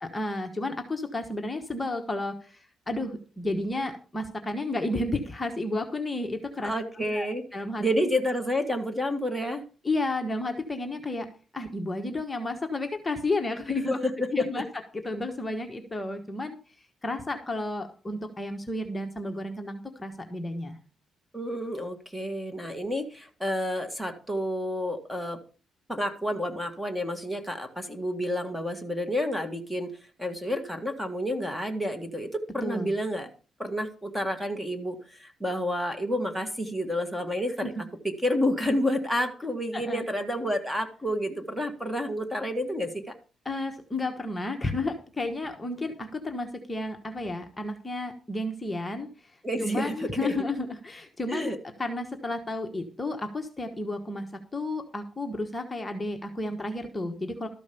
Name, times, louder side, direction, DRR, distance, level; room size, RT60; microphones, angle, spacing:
voice 1, 0.0-7.3 7.5-7.8 9.8-11.3 11.5-14.0 14.3-14.6 14.9-16.6 17.0-20.8 32.6-32.9 37.6-37.8 39.7-40.1 43.4-51.5 51.8-57.5, left 2 dB, 20° left, 4 dB, 1.4 m, -32 dB
voice 2, 6.6-7.4 7.8-9.6 14.0-14.1 14.4-14.6 21.3-25.4 25.9-29.9 30.2-33.3 33.6-37.7 38.0-43.1 49.4-50.3 51.3-51.6, equal, 5° right, 7 dB, 1.8 m, -29 dB
13.0 x 5.2 x 6.9 m, 0.38 s
cardioid pair, 90°, 0 cm